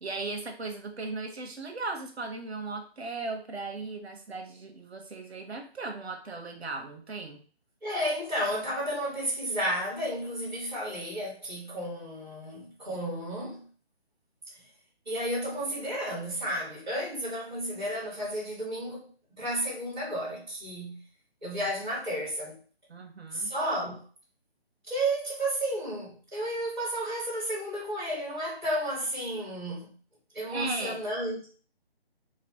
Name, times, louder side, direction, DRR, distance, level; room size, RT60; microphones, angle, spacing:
voice 1, 0.0-7.4 22.9-23.5 30.5-31.0, right 3 dB, 80° right, 1.3 m, -37 dB
voice 2, 7.8-13.7 15.0-19.1 19.4-21.0 21.4-22.6 23.3-24.0 24.9-29.9 30.3-31.5, right 1 dB, ahead, 0.8 m, -32 dB
3.2 x 3.2 x 4.2 m
hypercardioid pair, 170°, 32 cm